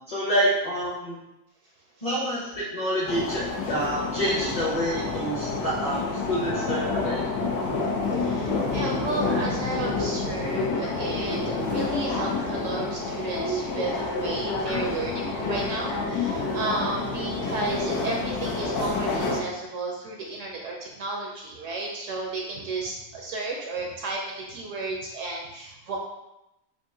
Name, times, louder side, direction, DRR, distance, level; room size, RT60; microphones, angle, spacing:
voice 1, 0.1-1.2 2.0-7.2, equal, 35° left, -7 dB, 0.7 m, -27 dB
sound 1, 3.1-19.4, left 3 dB, 90° left, 1.2 m, -28 dB
voice 2, 7.9-26.0, right 3 dB, 65° right, -1 dB, 0.9 m, -33 dB
4.6 x 2.5 x 2.7 m, 0.90 s
omnidirectional pair, 1.6 m